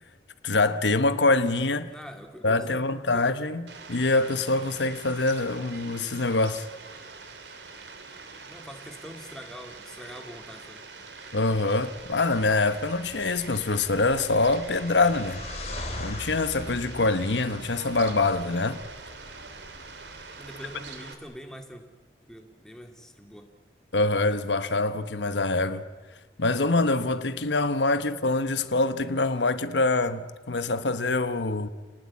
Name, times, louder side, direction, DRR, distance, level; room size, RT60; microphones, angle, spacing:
voice 1, 0.4-1.9 2.4-6.7 11.3-15.4 16.0-18.8 23.9-25.8 26.4-31.7, left 3 dB, 85° left, 1.1 m, -25 dB
voice 2, 1.9-3.3 8.5-10.9 20.4-21.8 22.2-23.5, equal, 5° left, 2.2 m, -44 dB
Fowl, 3.7-21.1, right 4 dB, 75° right, 2.7 m, -44 dB
sound 1, 11.9-21.0, left 2 dB, 40° left, 3.1 m, -42 dB
29.0 x 19.0 x 8.6 m
head